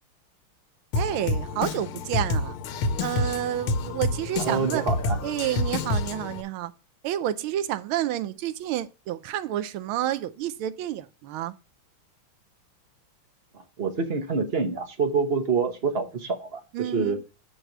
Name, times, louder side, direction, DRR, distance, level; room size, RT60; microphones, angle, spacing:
Drum kit, 0.9-6.4, left 3 dB, 85° left, 1.6 m, -28 dB
voice 1, 0.9-2.6 3.0-4.8 5.2-6.7 7.0-11.5 16.7-17.2, right 12 dB, 80° right, 1.5 m, -29 dB
voice 2, 4.4-5.2 13.5-17.2, right 5 dB, 40° right, 1.0 m, -27 dB
6.6 x 4.8 x 5.9 m
omnidirectional pair, 2.3 m